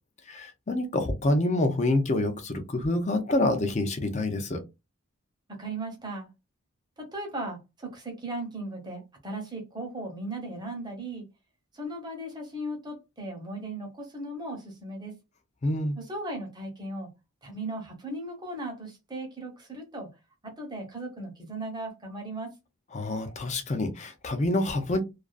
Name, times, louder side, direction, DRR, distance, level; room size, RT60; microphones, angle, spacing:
voice 1, 0.3-4.6 15.6-16.0 22.9-25.0, left 2 dB, 30° left, 0.5 m, -27 dB
voice 2, 5.6-6.3 7.0-11.2 11.7-15.2 16.0-17.1 17.4-20.1 20.4-22.5, right 2 dB, 20° right, 0.8 m, -37 dB
2.4 x 2.3 x 2.3 m
head